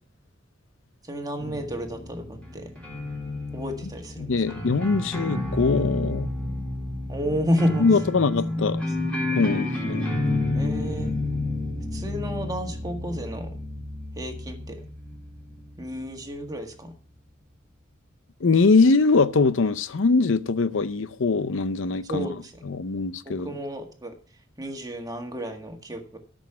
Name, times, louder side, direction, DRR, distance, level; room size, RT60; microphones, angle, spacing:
voice 1, 1.0-2.7 3.5-4.4 7.1-7.8 9.0-9.1 10.5-11.2 11.9-13.6 14.1-14.9 15.8-16.9 22.0-22.6 23.4-24.1 24.6-26.2, equal, 20° right, 1.8 m, -31 dB
sound 1, 1.4-16.7, left 2 dB, 5° left, 3.3 m, -31 dB
voice 2, 4.2-6.3 7.8-8.8 9.4-10.2 18.4-22.3 22.6-23.5, left 4 dB, 75° left, 0.6 m, -22 dB
12.5 x 6.4 x 5.9 m
head